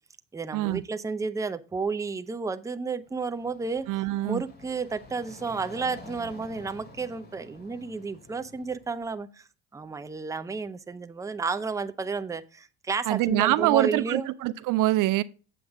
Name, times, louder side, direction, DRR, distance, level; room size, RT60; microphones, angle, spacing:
voice 1, 0.3-3.9 4.2-14.3, right 4 dB, 10° right, 0.6 m, -32 dB
sound 1, 3.0-9.1, left 2 dB, 25° left, 2.9 m, -49 dB
voice 2, 3.9-4.4 13.1-15.2, right 16 dB, 55° right, 0.5 m, -24 dB
7.9 x 7.6 x 3.6 m
supercardioid pair, 85°, 37 cm